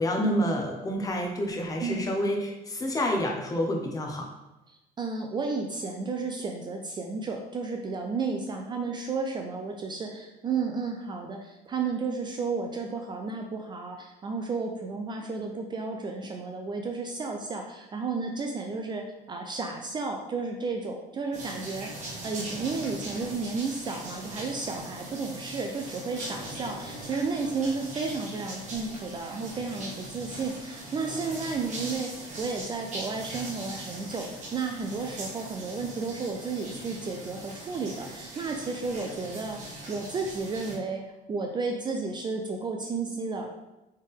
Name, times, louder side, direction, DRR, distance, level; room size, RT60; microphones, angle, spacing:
voice 1, 0.0-4.3, equal, 20° left, 1 dB, 0.8 m, -28 dB
voice 2, 4.7-41.0 41.3-43.5, right 4 dB, 25° right, 3 dB, 0.4 m, -32 dB
sound 1, 21.3-40.8, right 1 dB, 45° right, 1.2 m, -40 dB
4.3 x 3.5 x 3.5 m, 0.98 s
cardioid pair, 135°, 17 cm